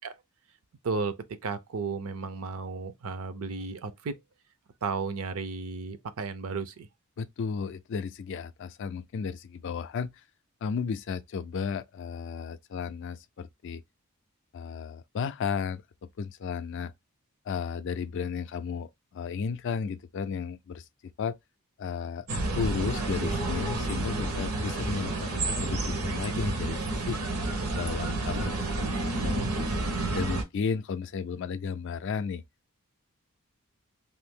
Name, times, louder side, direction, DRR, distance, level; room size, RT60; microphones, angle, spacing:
voice 1, 0.8-1.2 1.4-4.1 4.8-6.9, right 4 dB, 70° right, 0.5 m, -33 dB
voice 2, 7.2-10.1 10.6-13.8 14.5-15.8 16.2-16.9 17.5-20.8 21.2-21.4 21.8-22.3 22.5-26.8 27.1-27.2 27.7-29.8 30.1-32.4, left 6 dB, 55° left, 0.3 m, -33 dB
sound 1, 22.3-30.4, right 2 dB, 85° right, 0.9 m, -30 dB
2.7 x 2.6 x 3.5 m
head